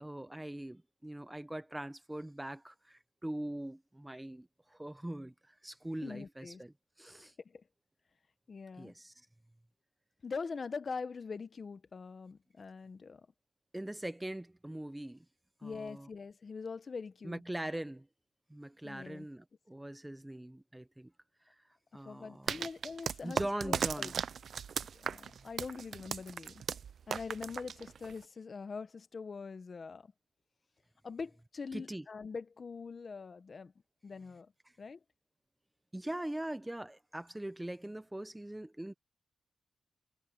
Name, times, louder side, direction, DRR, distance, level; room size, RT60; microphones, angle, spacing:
voice 1, 0.0-7.3 8.8-9.3 13.7-15.2 15.6-16.1 17.2-18.1 18.5-21.1 21.5-21.6 21.9-22.7 23.2-24.2 31.7-32.0 35.9-38.9, right 1 dB, 10° right, 1.1 m, -42 dB
voice 2, 6.0-6.6 7.2-7.6 8.5-8.9 10.2-13.3 15.6-17.4 18.8-19.3 22.0-23.4 23.6-24.1 24.9-26.6 27.1-30.1 31.0-33.7 34.0-34.5 34.8-35.0, left 5 dB, 45° left, 1.1 m, -43 dB
sound 1, 22.5-28.2, right 7 dB, 70° right, 0.5 m, -37 dB
wide cardioid pair, 115°, 0 cm